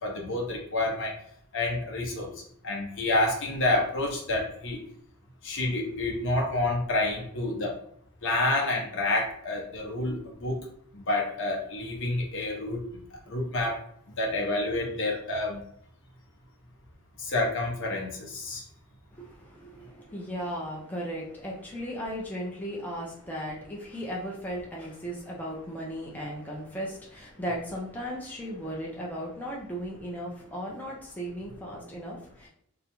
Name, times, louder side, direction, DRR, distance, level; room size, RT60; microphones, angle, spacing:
voice 1, 0.0-1.1 1.5-2.3 2.6-4.8 5.4-7.7 8.2-10.7 10.9-13.8 14.2-15.6 17.2-18.6, left 2 dB, 60° left, 0 dB, 0.7 m, -29 dB
voice 2, 19.1-32.5, equal, 10° left, -3 dB, 0.4 m, -36 dB
2.4 x 2.1 x 2.9 m, 0.67 s
head